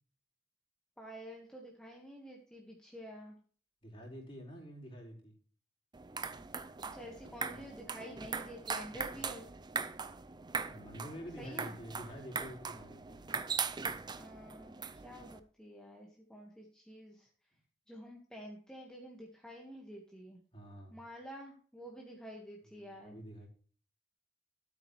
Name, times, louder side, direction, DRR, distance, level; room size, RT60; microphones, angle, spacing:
voice 1, 1.0-3.4 6.9-9.5 11.4-11.7 14.1-14.7 15.0-17.3 17.9-20.4 20.9-23.2, equal, 5° left, -1 dB, 1.7 m, -49 dB
voice 2, 3.8-5.3 9.1-9.5 10.7-13.3 20.5-21.0 22.7-23.5, equal, 35° left, -2 dB, 4.7 m, -48 dB
sound 1, 5.9-15.4, right 5 dB, 25° right, 0.6 m, -40 dB
13.0 x 8.7 x 3.2 m, 0.43 s
head